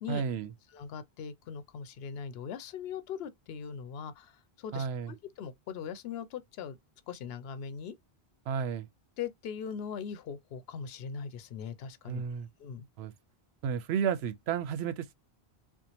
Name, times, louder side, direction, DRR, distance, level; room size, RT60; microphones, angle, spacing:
voice 1, 0.1-0.5 4.7-5.1 8.5-8.9 12.1-12.5 13.0-13.1 13.6-15.1, right 7 dB, 85° right, 0.8 m, -32 dB
voice 2, 0.7-6.8 7.1-7.9 9.2-12.2 12.6-12.8, left 7 dB, 75° left, 0.8 m, -40 dB
4.5 x 2.0 x 2.7 m
omnidirectional pair, 1.0 m